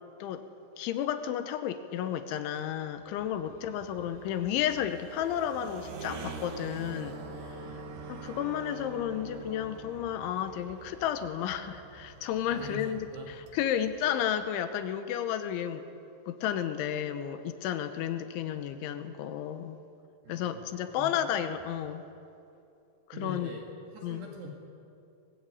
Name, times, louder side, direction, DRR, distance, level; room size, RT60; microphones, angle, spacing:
voice 1, 0.8-7.2 7.4-7.6 8.1-13.0 13.3-15.8 16.3-19.8 20.3-22.0 23.2-23.5 24.0-24.3, left 10 dB, 85° left, 9 dB, 3.4 m, -32 dB
sound 1, 2.8-14.4, right 3 dB, 85° right, 4.4 m, -45 dB
voice 2, 3.4-3.8 7.6-8.0 12.5-13.3 20.2-20.6 21.0-21.2 21.5-21.6 23.1-23.6 23.9-24.5, equal, 65° right, 0 dB, 4.1 m, -44 dB
24.0 x 20.5 x 8.6 m, 2.7 s
omnidirectional pair, 5.3 m